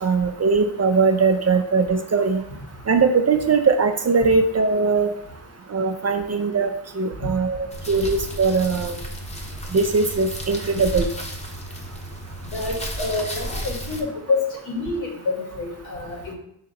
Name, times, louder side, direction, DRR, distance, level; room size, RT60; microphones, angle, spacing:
voice 1, 0.0-2.4 2.9-5.1 5.7-8.9 9.7-11.1, right 4 dB, 35° right, 6 dB, 0.4 m, -20 dB
sound 1, 7.7-14.0, equal, 15° left, 0.8 m, -33 dB
voice 2, 12.5-16.3, left 3 dB, 75° left, -2 dB, 1.5 m, -27 dB
4.1 x 2.9 x 3.9 m, 0.75 s
cardioid pair, 60°, 47 cm